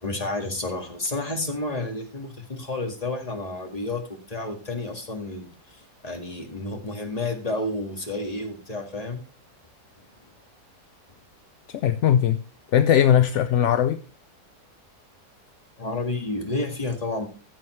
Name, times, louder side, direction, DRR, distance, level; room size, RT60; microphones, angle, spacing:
voice 1, 0.0-9.2 15.8-17.3, left 2 dB, 25° left, 1.9 m, -30 dB
voice 2, 11.7-12.4 12.7-14.0, left 10 dB, 65° left, 0.7 m, -19 dB
15.5 x 7.2 x 3.2 m
omnidirectional pair, 1.7 m